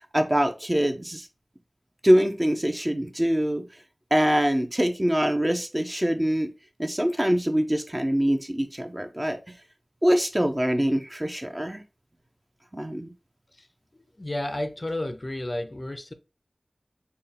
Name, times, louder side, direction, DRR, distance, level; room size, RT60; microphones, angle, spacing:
voice 1, 0.1-1.3 2.0-3.6 4.1-6.5 6.8-9.4 10.0-11.8 12.7-13.1, equal, 25° right, 0.5 m, -24 dB
voice 2, 13.9-16.1, left 1 dB, 40° left, 0.4 m, -32 dB
3.9 x 2.2 x 3.4 m
wide cardioid pair, 65°, 0 cm